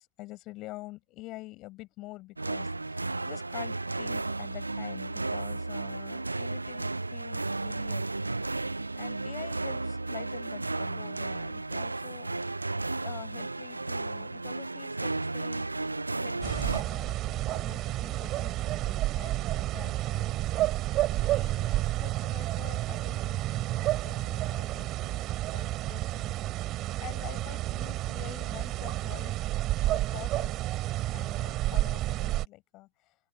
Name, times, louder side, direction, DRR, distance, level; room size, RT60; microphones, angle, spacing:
voice 1, 0.0-8.1 8.9-12.6 13.0-15.7 16.1-20.8 21.1-25.3 25.5-26.4 26.7-29.4 29.8-30.7 31.1-33.2, left 19 dB, 40° left, 7.9 m, -47 dB
sound 1, 2.4-16.8, right 2 dB, 80° right, 0.5 m, -33 dB
sound 2, 16.4-32.4, right 15 dB, 35° right, 3.5 m, -30 dB
open air
figure-of-eight pair, 90°, 0 cm